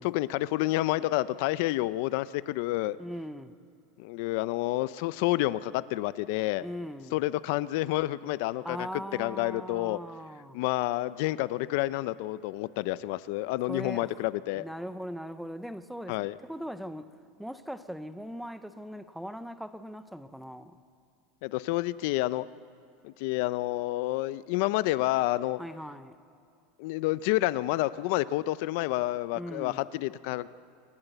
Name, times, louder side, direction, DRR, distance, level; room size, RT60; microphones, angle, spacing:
voice 1, 0.0-3.0 4.0-6.7 7.1-8.9 9.1-10.0 10.5-14.7 16.1-16.3 21.4-22.5 23.0-25.6 26.8-30.5, left 17 dB, 50° left, 17 dB, 0.4 m, -29 dB
voice 2, 3.0-3.5 6.6-7.2 8.6-10.6 13.7-14.2 14.5-17.1 17.4-20.7 25.6-26.2 29.3-29.9, equal, ahead, 12 dB, 0.5 m, -40 dB
27.5 x 12.0 x 7.9 m, 2.6 s
supercardioid pair, 175°, 0 cm